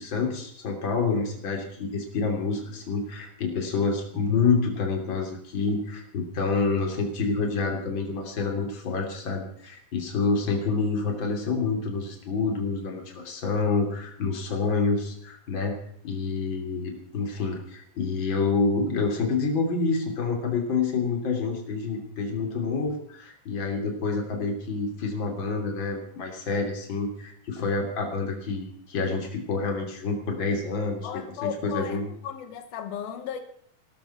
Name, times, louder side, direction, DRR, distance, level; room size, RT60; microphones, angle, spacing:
voice 1, 0.0-15.8 16.0-32.1, left 4 dB, 35° left, 3.4 m, -28 dB
voice 2, 31.0-33.4, left 8 dB, 85° left, 3.0 m, -35 dB
17.0 x 13.0 x 5.7 m
omnidirectional pair, 4.2 m